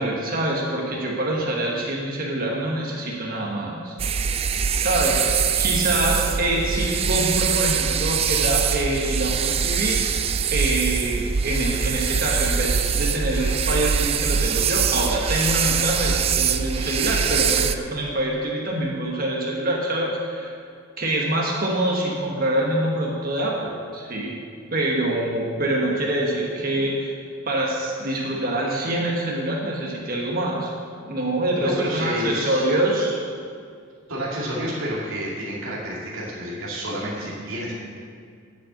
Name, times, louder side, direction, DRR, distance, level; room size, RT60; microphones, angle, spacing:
voice 1, 0.0-3.9 4.8-10.0 10.5-20.5 21.0-24.3 24.7-27.1 27.5-30.7 31.0-33.2, right 1 dB, 45° right, -2 dB, 1.2 m, -25 dB
sound 1, 4.0-17.8, right 7 dB, 30° right, 0.3 m, -23 dB
voice 2, 31.6-32.7 34.1-37.7, equal, 85° right, -6 dB, 2.3 m, -29 dB
10.5 x 5.7 x 7.7 m, 2.2 s
head